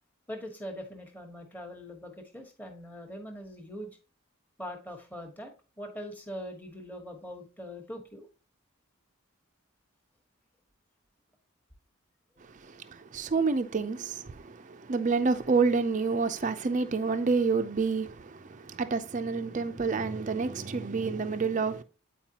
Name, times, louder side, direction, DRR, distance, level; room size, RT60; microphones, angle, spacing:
voice 1, 0.3-3.9 4.6-5.5 5.8-8.3 12.4-12.5, equal, 10° left, 1.2 m, -42 dB
voice 2, 12.4-21.8, right 4 dB, 35° right, 0.4 m, -29 dB
8.9 x 4.6 x 2.8 m
head